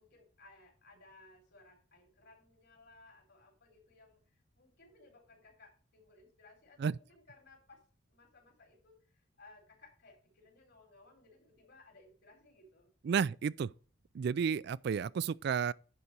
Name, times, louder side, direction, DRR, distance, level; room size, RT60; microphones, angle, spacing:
voice 1, 0.0-7.8 8.1-12.9, left 2 dB, 60° left, 4.0 m, -61 dB
voice 2, 13.0-13.7 14.1-15.7, right 6 dB, 60° right, 0.3 m, -32 dB
10.5 x 4.2 x 6.6 m
head